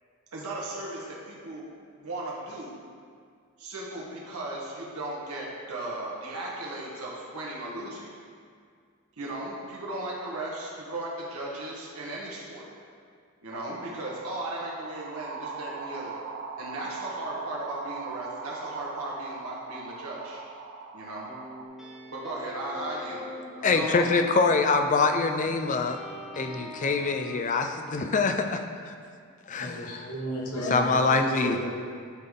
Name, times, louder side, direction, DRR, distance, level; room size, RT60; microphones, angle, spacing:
voice 1, 0.3-1.6 2.0-2.8 3.6-8.1 9.2-12.6 13.4-16.2 16.6-20.4 20.9-21.3 22.1-23.3 23.5-24.1, right 1 dB, 75° right, -5 dB, 1.3 m, -36 dB
sound 1, 13.5-21.7, right 4 dB, 55° right, 0.5 m, -40 dB
sound 2, 21.3-25.0 25.4-27.4, left 1 dB, ahead, 0.8 m, -44 dB
voice 2, 23.6-26.0 26.4-28.9 29.5-30.1 30.7-31.6, left 4 dB, 35° left, 6 dB, 0.4 m, -25 dB
voice 3, 29.6-31.7, equal, 80° left, -2 dB, 1.3 m, -32 dB
11.0 x 3.9 x 3.7 m, 2.1 s
head